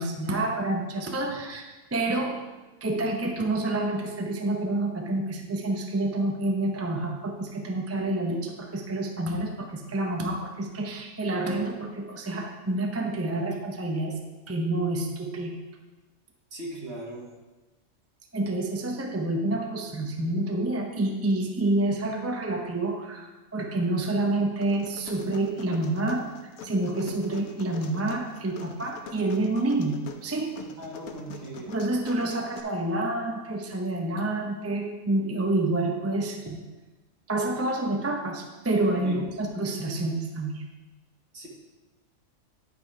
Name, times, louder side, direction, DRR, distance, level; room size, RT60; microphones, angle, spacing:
voice 1, 0.0-1.6 1.9-2.4 2.8-14.2 14.5-15.6 18.3-26.3 26.6-30.6 31.7-36.6 37.3-40.6, right 2 dB, 15° right, 2 dB, 0.5 m, -28 dB
voice 2, 16.5-17.3 30.8-31.8 39.0-39.2 41.3-41.5, right 2 dB, 50° right, -2 dB, 1.9 m, -38 dB
sound 1, 24.6-32.6, left 6 dB, 85° left, 1.2 m, -44 dB
10.0 x 5.5 x 4.7 m, 1.2 s
omnidirectional pair, 1.5 m